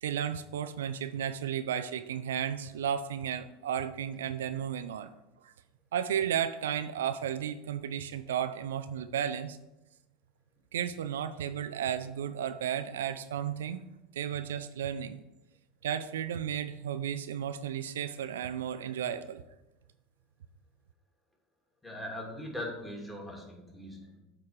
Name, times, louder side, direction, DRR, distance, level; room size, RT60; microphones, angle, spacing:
voice 1, 0.0-5.1 5.4-5.5 5.9-9.6 10.7-13.8 14.1-15.2 15.8-19.4, right 9 dB, 80° right, 11 dB, 0.3 m, -33 dB
voice 2, 21.8-24.2, left 1 dB, 10° left, -1 dB, 2.4 m, -40 dB
7.9 x 3.6 x 4.8 m, 0.93 s
hypercardioid pair, 80°, 0 cm